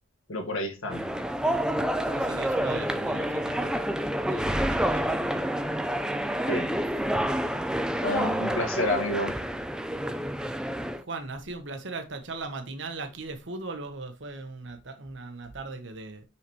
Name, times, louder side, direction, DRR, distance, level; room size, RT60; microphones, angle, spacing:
voice 1, 0.3-1.0 6.5-6.7 8.0-9.3, left 2 dB, 80° left, 1.7 m, -29 dB
voice 2, 0.8-1.3 2.0-5.6 10.9-16.2, right 3 dB, 60° right, 1.0 m, -39 dB
sound 1, 0.9-11.0, right 1 dB, 5° right, 0.4 m, -28 dB
5.7 x 5.7 x 3.1 m
head